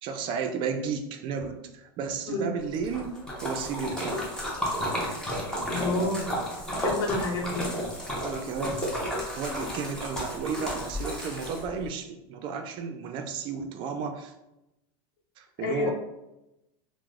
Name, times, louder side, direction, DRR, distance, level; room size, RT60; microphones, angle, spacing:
voice 1, 0.0-3.1 3.4-4.2 8.2-9.0 9.3-14.3 15.4-15.9, right 5 dB, 40° right, 5 dB, 0.4 m, -33 dB
Splash splatter, 2.7-11.9, equal, 5° left, 0.7 m, -32 dB
voice 2, 5.7-6.3 6.8-7.7 15.6-15.9, left 2 dB, 85° left, 1 dB, 0.8 m, -29 dB
3.0 x 2.0 x 3.5 m, 0.92 s
supercardioid pair, 140°, 13 cm